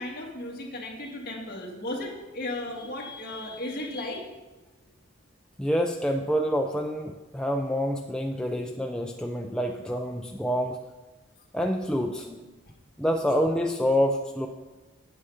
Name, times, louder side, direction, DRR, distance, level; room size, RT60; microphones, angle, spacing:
voice 1, 0.0-4.3, left 1 dB, 45° left, -2 dB, 2.0 m, -35 dB
voice 2, 5.6-10.8 11.5-12.5 13.0-14.5, equal, 5° left, 2 dB, 0.4 m, -27 dB
8.5 x 8.1 x 5.5 m, 1.2 s
head